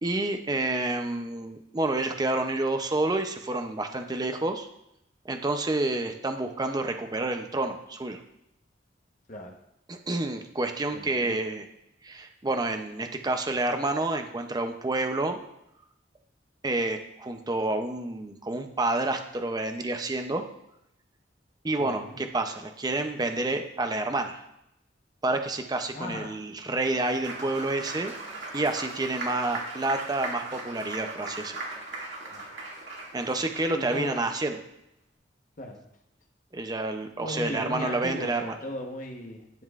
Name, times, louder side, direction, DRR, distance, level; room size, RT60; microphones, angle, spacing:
voice 1, 0.0-4.7 5.2-8.2 9.9-11.7 12.0-15.4 16.6-20.4 21.6-24.4 25.2-28.1 28.5-31.6 33.1-34.6 36.5-38.5, right 2 dB, 20° right, 6 dB, 0.6 m, -29 dB
voice 2, 10.9-11.4 21.8-22.2 25.9-26.4 32.3-32.5 33.7-34.2 35.6-35.8 37.2-39.6, left 1 dB, 45° left, 2 dB, 1.1 m, -37 dB
Applause, 26.6-34.5, right 2 dB, 75° right, 2.2 m, -39 dB
11.0 x 7.7 x 2.5 m, 0.82 s
head